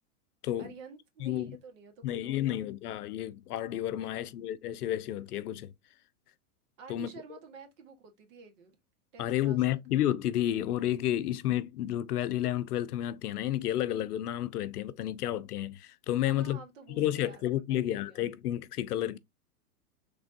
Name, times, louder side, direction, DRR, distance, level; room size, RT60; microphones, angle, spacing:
voice 1, 0.6-2.7 4.0-4.3 6.8-8.7 9.1-9.6 16.2-18.2, right 5 dB, 60° right, 1.4 m, -51 dB
voice 2, 1.2-1.6 2.0-5.7 6.9-7.1 9.2-16.6 17.0-19.2, left 12 dB, 90° left, 0.6 m, -31 dB
3.4 x 3.3 x 2.7 m
hypercardioid pair, 130°, 44 cm